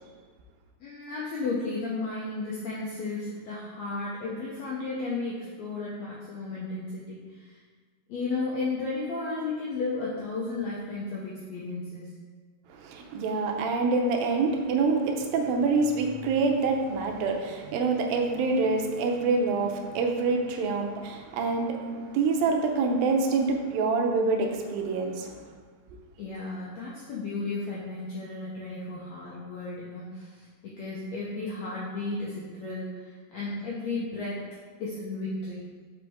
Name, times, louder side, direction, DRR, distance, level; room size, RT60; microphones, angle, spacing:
voice 1, 0.8-7.6 8.1-12.1 26.2-34.4 34.8-35.6, left 3 dB, 80° left, -6 dB, 1.5 m, -34 dB
voice 2, 12.8-25.3, right 4 dB, 80° right, 3 dB, 2.4 m, -26 dB
6.3 x 5.2 x 3.5 m, 1.5 s
omnidirectional pair, 4.2 m